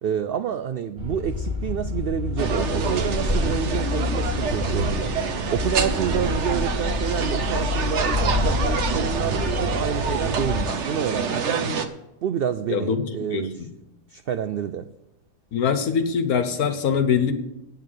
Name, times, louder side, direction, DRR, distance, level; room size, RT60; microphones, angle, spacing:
voice 1, 0.0-5.1 5.5-11.4 12.2-13.7 14.1-14.9, right 8 dB, 80° right, 0.5 m, -28 dB
sound 1, 1.0-10.7, left 3 dB, 5° right, 1.8 m, -28 dB
sound 2, 2.4-11.9, right 5 dB, 55° right, 1.1 m, -27 dB
voice 2, 13.3-13.7 15.5-17.3, left 6 dB, 85° left, 1.6 m, -23 dB
8.8 x 8.7 x 7.8 m
omnidirectional pair, 1.5 m